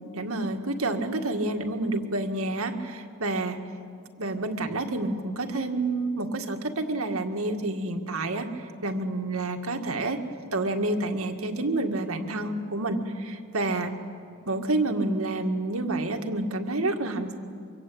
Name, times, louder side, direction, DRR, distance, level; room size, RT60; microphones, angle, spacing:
voice 1, 0.0-3.6 4.2-10.2 10.5-13.9 14.5-17.4, right 2 dB, 80° right, 5 dB, 1.9 m, -29 dB
24.0 x 24.0 x 8.7 m, 2.3 s
head